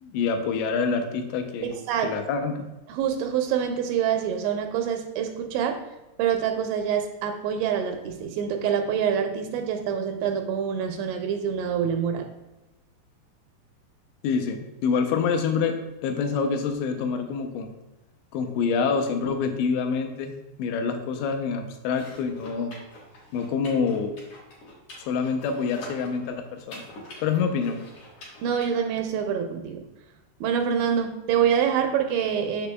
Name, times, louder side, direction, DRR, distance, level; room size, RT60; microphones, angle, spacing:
voice 1, 0.0-1.8 2.0-2.7 14.2-17.7 18.3-20.3 20.6-22.8 23.3-24.2 25.1-26.8 27.2-27.8, left 5 dB, 85° left, 5 dB, 2.8 m, -26 dB
voice 2, 1.6-2.1 2.9-5.8 6.2-12.3 28.4-29.8 30.4-32.7, right 8 dB, 85° right, 4 dB, 2.8 m, -26 dB
sound 1, 21.9-28.7, left 1 dB, 65° left, 1.8 m, -46 dB
6.8 x 6.7 x 2.2 m, 1.0 s
omnidirectional pair, 5.2 m